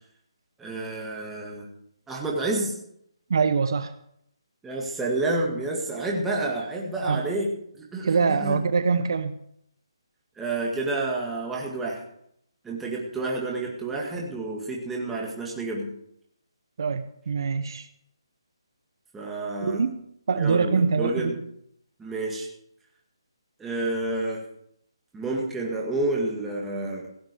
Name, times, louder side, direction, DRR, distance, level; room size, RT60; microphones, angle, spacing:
voice 1, 0.6-1.7 2.1-2.7 4.6-7.5 7.7-8.6 10.4-12.0 12.6-15.9 19.1-19.8 20.4-21.3 22.0-22.5 23.6-24.4 25.1-27.1, right 2 dB, 5° right, -2 dB, 2.0 m, -29 dB
voice 2, 3.3-3.9 7.0-7.3 8.0-9.4 16.8-17.9 19.6-20.0 20.3-21.3, right 5 dB, 55° right, 11 dB, 0.8 m, -24 dB
16.5 x 7.9 x 6.9 m, 0.74 s
hypercardioid pair, 170°, 3 cm